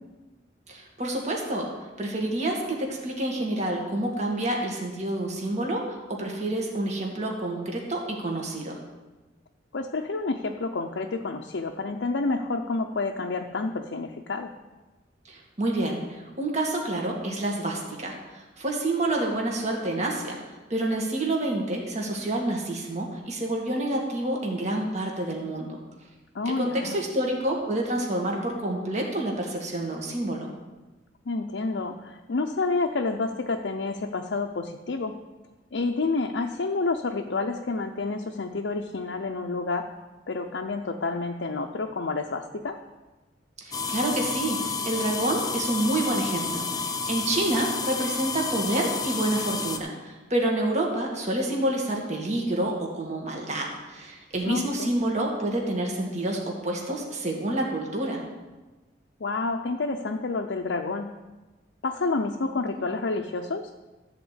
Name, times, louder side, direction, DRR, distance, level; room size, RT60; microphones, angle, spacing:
voice 1, 0.7-1.7 2.0-8.8 15.3-20.4 20.7-25.8 26.5-30.5 43.6-58.2, right 1 dB, 40° right, 0 dB, 1.8 m, -28 dB
voice 2, 9.7-14.5 26.3-27.0 31.3-35.1 35.7-39.9 40.3-42.8 54.5-54.9 59.2-61.1 61.8-63.7, left 3 dB, 85° left, 1 dB, 0.6 m, -29 dB
sound 1, 43.7-49.8, left 4 dB, 20° left, 0.8 m, -30 dB
13.0 x 4.4 x 8.1 m, 1.2 s
head